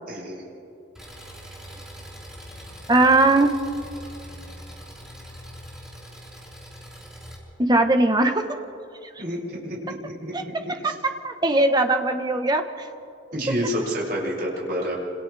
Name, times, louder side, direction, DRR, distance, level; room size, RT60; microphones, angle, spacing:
voice 1, 0.1-0.4 9.2-10.3 10.8-10.9 13.3-14.9, equal, 55° right, -4 dB, 6.8 m, -29 dB
Engine, 1.0-7.4, equal, 5° right, 4.7 m, -42 dB
voice 2, 2.9-3.5 7.6-8.4 10.3-10.4 10.8-12.9, right 2 dB, 20° right, 6 dB, 1.2 m, -20 dB
28.5 x 27.0 x 3.5 m, 2.7 s
head